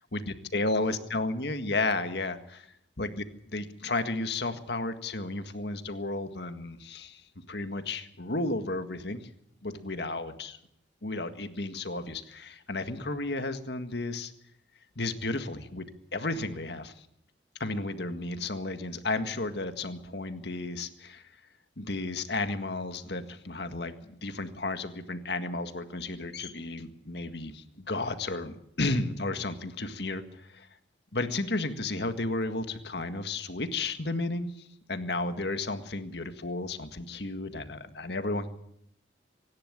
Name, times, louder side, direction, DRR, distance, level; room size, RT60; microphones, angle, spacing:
voice 1, 0.1-2.7 3.0-9.3 9.6-10.6 11.0-14.3 15.0-15.9 16.1-17.1 17.6-21.2 21.8-30.7 31.1-38.5, left 2 dB, 65° left, 8 dB, 1.8 m, -33 dB
25.0 x 11.5 x 9.8 m, 0.74 s
head